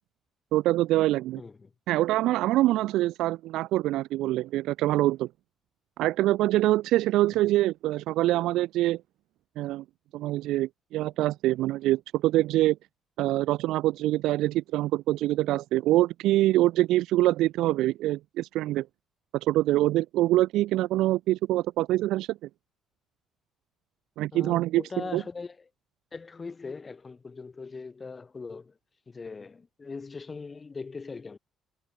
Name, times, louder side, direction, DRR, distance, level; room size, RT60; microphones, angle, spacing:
voice 1, 0.5-1.4 1.9-5.3 6.0-9.0 9.6-9.8 10.1-12.8 13.2-18.9 19.4-22.4 24.2-24.8 25.1-25.2, right 16 dB, 85° right, 1.0 m, -25 dB
voice 2, 1.4-1.7 24.3-25.7 26.1-28.7 29.1-31.4, left 4 dB, 20° left, 5.1 m, -40 dB
cardioid pair, 165°, 0 cm